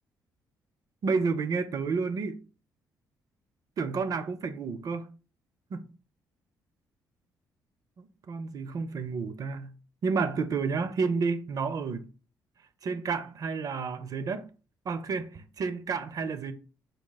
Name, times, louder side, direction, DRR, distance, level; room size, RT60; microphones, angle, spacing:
voice 1, 1.0-2.4 3.8-5.1 5.7-5.8 8.0-9.7 10.0-12.1 12.8-14.5 14.9-16.5, right 5 dB, 50° right, 0.5 m, -30 dB
3.7 x 2.3 x 3.9 m
supercardioid pair, 70°, 8 cm